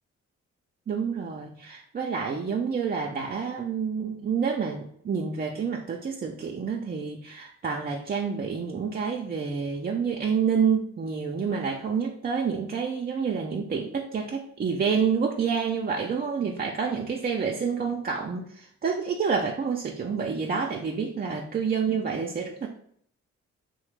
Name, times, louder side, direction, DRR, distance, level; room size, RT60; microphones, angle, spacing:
voice 1, 0.9-22.7, right 6 dB, 30° right, 0 dB, 0.4 m, -28 dB
2.8 x 2.1 x 3.1 m, 0.64 s
supercardioid pair, 45°, 31 cm